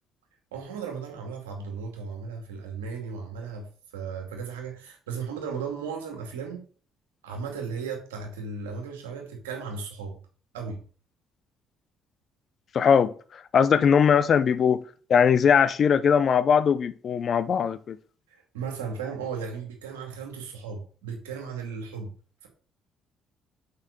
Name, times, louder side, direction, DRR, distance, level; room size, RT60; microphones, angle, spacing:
voice 1, 0.5-3.7 3.9-6.6 7.2-10.2 10.5-10.8 18.3-22.1, right 5 dB, 90° right, 2.3 m, -35 dB
voice 2, 12.7-13.1 13.5-14.8 15.1-18.0, left 7 dB, 55° left, 0.7 m, -20 dB
5.8 x 5.6 x 6.6 m
hypercardioid pair, 55°, 0 cm